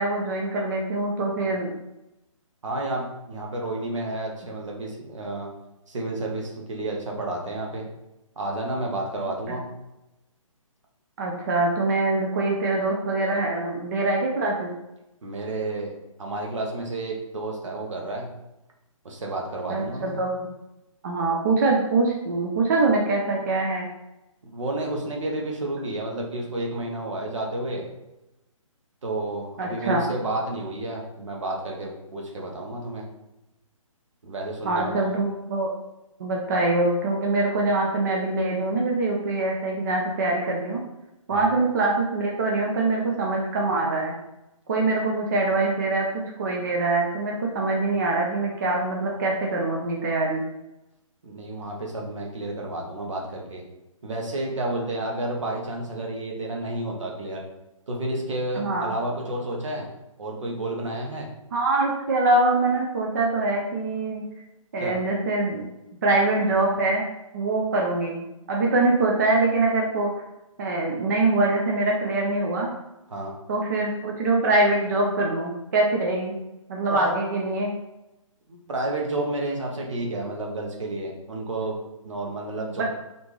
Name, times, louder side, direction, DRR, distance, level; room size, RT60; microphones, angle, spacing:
voice 1, 0.0-1.7 11.2-14.7 19.7-20.3 21.0-23.9 29.6-30.0 34.6-35.7 36.2-40.8 41.3-44.1 44.7-46.1 46.4-50.4 58.5-58.9 61.5-64.2 64.7-65.6 66.0-67.1 67.3-70.1 70.6-72.7 73.5-76.4 76.7-77.7 82.8-82.9, right 2 dB, 35° right, -1 dB, 0.4 m, -24 dB
voice 2, 2.6-5.5 5.9-7.9 8.4-9.7 15.2-15.9 16.2-18.3 19.0-20.2 24.5-27.8 29.0-33.0 34.2-35.2 41.3-41.5 51.2-53.6 54.0-57.4 57.9-59.9 60.2-61.3 64.8-65.0 73.1-73.3 76.9-77.2 78.5-81.8 82.0-82.8, right 2 dB, 65° right, -1 dB, 1.0 m, -31 dB
3.3 x 2.6 x 3.0 m, 0.94 s
figure-of-eight pair, 140°, 17 cm